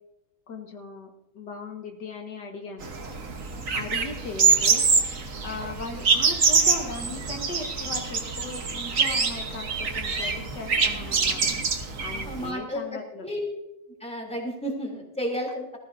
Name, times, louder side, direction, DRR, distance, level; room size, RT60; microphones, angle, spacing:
voice 1, 0.5-1.1 1.3-2.9 3.7-4.9 5.4-11.5 12.0-13.3, left 3 dB, 80° left, 2 dB, 2.2 m, -38 dB
sound 1, 2.8-12.5, right 5 dB, 50° right, 1.6 m, -25 dB
voice 2, 12.1-13.4 14.0-15.8, equal, 5° left, 0 dB, 3.1 m, -32 dB
19.0 x 14.5 x 2.7 m, 0.92 s
omnidirectional pair, 1.8 m